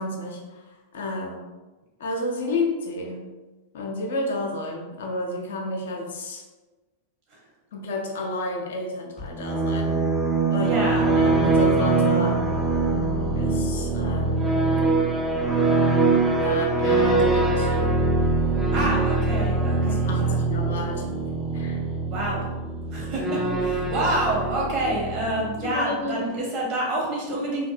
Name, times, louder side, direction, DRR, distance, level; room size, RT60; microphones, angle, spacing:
voice 1, 0.0-1.5 2.0-3.2 3.7-6.4 7.7-10.0 10.5-10.8 11.0-12.4 13.3-14.5 16.3-18.0 18.7-18.9 19.8-21.1 21.5-22.0 24.8-24.9 25.3-26.2, left 2 dB, 60° left, 1 dB, 0.4 m, -31 dB
sound 1, 9.2-25.8, right 3 dB, 5° right, 0.4 m, -23 dB
voice 2, 10.6-11.1 18.7-20.4 22.1-22.4 22.9-27.7, right 1 dB, 40° right, -4 dB, 1.0 m, -27 dB
2.6 x 2.6 x 2.4 m, 1.2 s
figure-of-eight pair, 90°, 0 cm